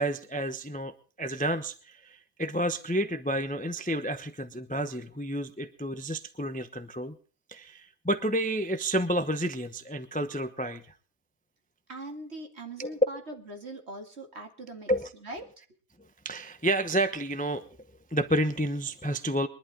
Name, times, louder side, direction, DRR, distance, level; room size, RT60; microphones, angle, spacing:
voice 1, 0.0-7.1 7.5-10.8 12.8-13.0 14.9-15.1 16.2-17.7 18.1-19.5, right 1 dB, 10° left, 10 dB, 0.7 m, -30 dB
voice 2, 11.9-14.9 15.2-15.5, right 2 dB, 50° right, 4 dB, 2.6 m, -41 dB
23.0 x 11.5 x 3.6 m, 0.41 s
omnidirectional pair, 1.4 m